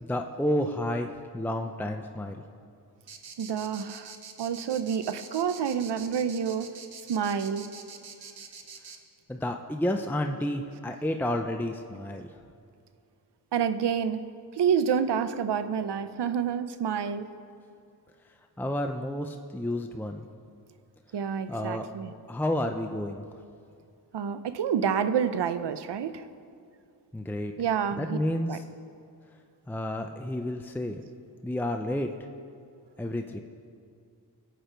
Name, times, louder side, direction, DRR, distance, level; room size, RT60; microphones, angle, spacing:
voice 1, 0.0-2.4 9.3-12.3 18.6-20.2 21.5-21.9 22.3-23.2 27.1-27.5 28.0-28.6 29.7-31.0 31.4-32.1 33.0-33.4, left 1 dB, 5° left, 4 dB, 0.7 m, -30 dB
sound 1, 3.1-9.0, right 5 dB, 60° right, 1.2 m, -45 dB
voice 2, 3.4-4.1 4.4-6.7 7.1-7.7 10.7-10.8 13.5-14.2 14.5-17.3 21.1-22.1 24.1-26.2 27.6-28.2 28.5-28.6, right 7 dB, 80° right, 11 dB, 0.8 m, -28 dB
21.0 x 8.6 x 4.6 m, 2.4 s
cardioid pair, 70°, 40 cm